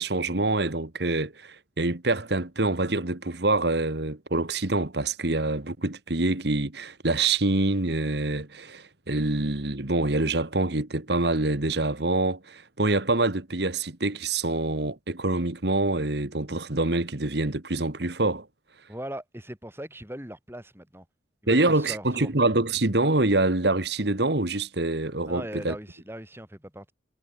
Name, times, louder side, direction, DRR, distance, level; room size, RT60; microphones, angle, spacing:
voice 1, 0.0-18.5 21.5-25.7, right 2 dB, 60° right, 1.7 m, -26 dB
voice 2, 18.9-21.0 21.4-22.3 25.3-26.9, right 1 dB, 15° right, 4.0 m, -39 dB
head